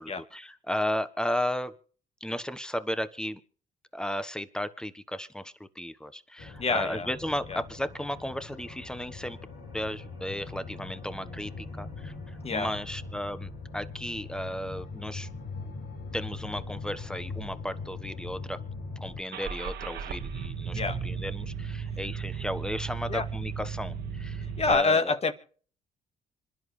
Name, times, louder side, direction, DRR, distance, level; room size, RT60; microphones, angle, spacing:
voice 1, 0.0-1.7 2.2-3.4 3.9-9.4 9.7-15.3 16.1-18.6 19.0-25.2, equal, 5° left, 12 dB, 1.3 m, -34 dB
sound 1, 6.4-19.2, left 3 dB, 85° left, 4.9 m, -41 dB
voice 2, 6.6-7.1 7.5-7.6 12.4-12.7 20.7-21.0 23.1-23.3 24.6-25.3, left 4 dB, 35° left, 8 dB, 1.9 m, -27 dB
Car / Engine starting, 19.3-24.7, right 6 dB, 70° right, 1.9 m, -35 dB
26.5 x 11.0 x 3.3 m, 0.43 s
supercardioid pair, 65°, 17 cm